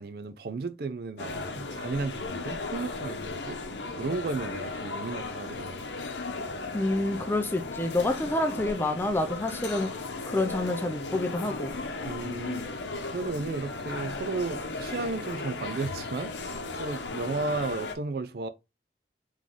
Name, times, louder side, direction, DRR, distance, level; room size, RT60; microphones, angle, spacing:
voice 1, 0.0-3.6 4.0-6.1 12.0-16.3 16.7-18.5, right 3 dB, 60° right, 0.4 m, -34 dB
sound 1, 1.2-17.9, left 3 dB, 90° left, 0.8 m, -36 dB
voice 2, 6.7-9.9 10.3-11.7, left 2 dB, 10° left, 0.4 m, -28 dB
3.8 x 3.1 x 3.6 m
head